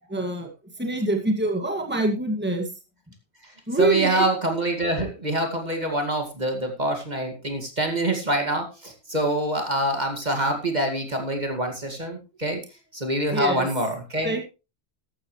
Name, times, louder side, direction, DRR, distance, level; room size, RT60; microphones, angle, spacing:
voice 1, 0.1-0.5 0.8-2.7 3.7-4.3 13.3-13.7 14.2-14.4, right 2 dB, 10° right, 2 dB, 2.1 m, -25 dB
voice 2, 3.8-12.6 12.9-14.4, right 1 dB, 40° right, 4 dB, 2.3 m, -25 dB
14.5 x 12.0 x 3.2 m, 0.29 s
omnidirectional pair, 1.1 m